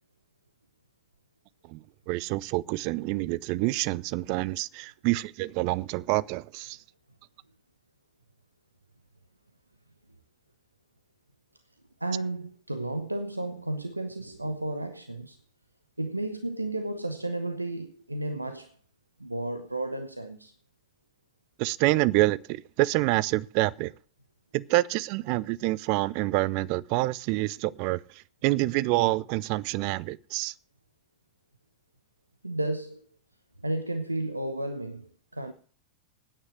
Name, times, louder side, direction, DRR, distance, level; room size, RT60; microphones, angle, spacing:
voice 1, 2.1-6.8 21.6-23.9 24.5-28.0 28.4-30.5, right 19 dB, 45° right, 0.5 m, -27 dB
voice 2, 12.0-15.4 16.0-18.8 19.2-20.5 32.4-33.1 33.6-35.5, right 1 dB, 85° right, 0.9 m, -33 dB
9.6 x 8.9 x 7.9 m
figure-of-eight pair, 90°, 0 cm